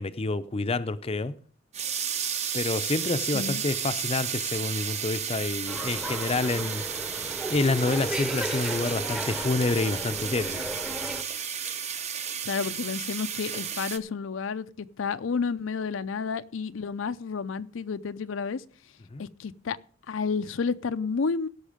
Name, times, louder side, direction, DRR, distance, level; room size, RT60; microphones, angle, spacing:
voice 1, 0.0-1.3 2.5-10.8 19.1-19.3, left 3 dB, 30° left, 0.5 m, -28 dB
sound 1, 1.7-14.0, right 8 dB, 35° right, 0.7 m, -33 dB
sound 2, 5.7-11.2, equal, 5° right, 0.7 m, -35 dB
voice 2, 12.4-18.6 19.2-19.8 20.1-21.5, left 5 dB, 85° left, 0.5 m, -31 dB
17.0 x 6.4 x 5.0 m
head